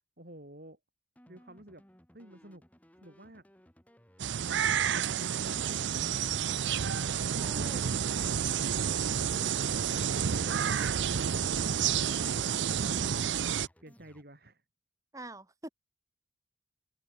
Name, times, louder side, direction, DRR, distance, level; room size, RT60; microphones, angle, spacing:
voice 1, 0.2-0.8 1.3-1.8 2.1-2.6 2.9-3.4 5.2-6.6 7.6-8.3 13.8-14.6, right 1 dB, 50° right, 3.9 m, -52 dB
sound 1, 1.2-14.2, equal, 10° left, 3.8 m, -61 dB
sound 2, 4.2-13.7, right 8 dB, 70° right, 0.5 m, -30 dB
voice 2, 7.3-7.9 15.1-15.7, right 1 dB, 15° right, 3.8 m, -45 dB
open air
head